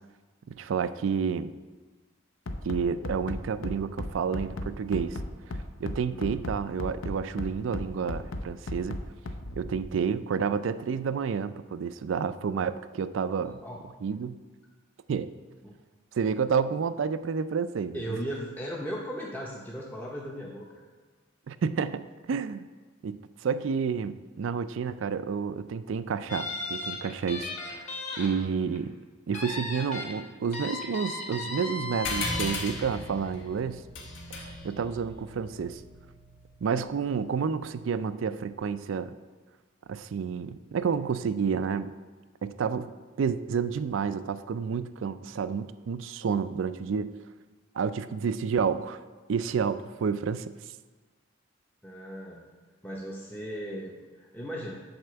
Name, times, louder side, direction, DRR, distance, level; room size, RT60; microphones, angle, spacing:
voice 1, 0.5-1.5 2.6-5.2 5.8-9.0 9.5-13.6 14.0-14.4 15.1-15.3 16.1-18.2 21.5-22.7 23.0-27.9 28.2-29.0 29.3-33.8 34.3-35.8 36.6-39.1 39.9-41.9 42.4-42.9 43.2-47.1 47.8-49.0 49.3-50.5, right 6 dB, 80° right, 13 dB, 0.4 m, -30 dB
Bass drum, 2.5-9.8, left 1 dB, 90° left, 0.7 m, -35 dB
voice 2, 17.9-20.7 51.8-52.4 52.8-54.8, equal, 10° left, -3 dB, 0.6 m, -37 dB
sound 1, 26.3-28.3 28.6-28.8 29.3-30.1 30.5-32.5, left 3 dB, 40° left, 1.4 m, -35 dB
sound 2, 32.0-37.0, left 2 dB, 70° left, 1.3 m, -37 dB
7.9 x 4.3 x 6.7 m, 1.4 s
head